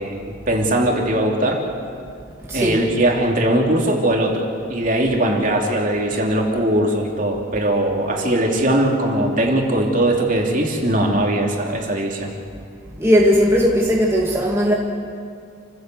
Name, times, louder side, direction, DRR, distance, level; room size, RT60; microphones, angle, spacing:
voice 1, 0.0-1.6 2.5-4.4 4.7-12.3, right 1 dB, 45° right, 0 dB, 3.2 m, -20 dB
voice 2, 2.5-2.8 13.0-14.7, equal, 15° right, -3 dB, 2.2 m, -17 dB
29.0 x 16.0 x 8.0 m, 2.3 s
head